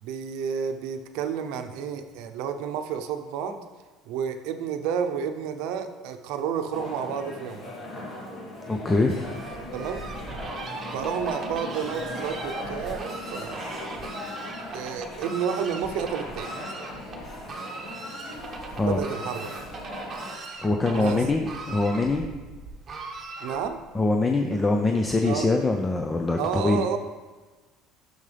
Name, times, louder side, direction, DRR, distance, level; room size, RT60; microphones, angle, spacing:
voice 1, 0.0-3.6 4.0-7.6 9.7-10.0 10.9-13.7 14.7-16.5 18.8-19.5 20.9-21.2 23.4-23.8 25.2-25.5 26.4-27.0, right 7 dB, 75° right, 7 dB, 0.7 m, -30 dB
sound 1, 6.7-20.4, left 1 dB, 30° left, 1.7 m, -39 dB
voice 2, 8.7-9.1 18.7-19.0 20.6-22.3 23.9-26.8, left 2 dB, 15° left, 3 dB, 0.5 m, -23 dB
Fowl, 9.1-23.9, right 3 dB, 25° right, 1.1 m, -39 dB
11.0 x 6.6 x 3.4 m, 1.3 s
cardioid pair, 155°, 0 cm